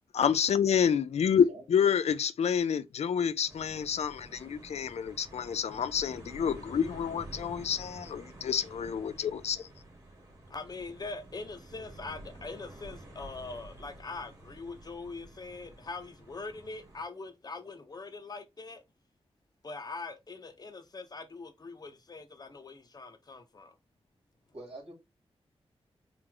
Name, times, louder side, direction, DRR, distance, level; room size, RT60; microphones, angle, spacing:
voice 1, 0.1-9.6, left 7 dB, 85° left, 0.4 m, -28 dB
voice 2, 1.3-1.6 24.5-24.9, right 2 dB, 70° right, 2.3 m, -45 dB
sound 1, 3.5-17.0, right 1 dB, 30° right, 1.8 m, -50 dB
voice 3, 10.5-18.8 19.6-23.7, left 3 dB, 40° left, 0.7 m, -42 dB
4.6 x 2.5 x 3.8 m
wide cardioid pair, 145°, 11 cm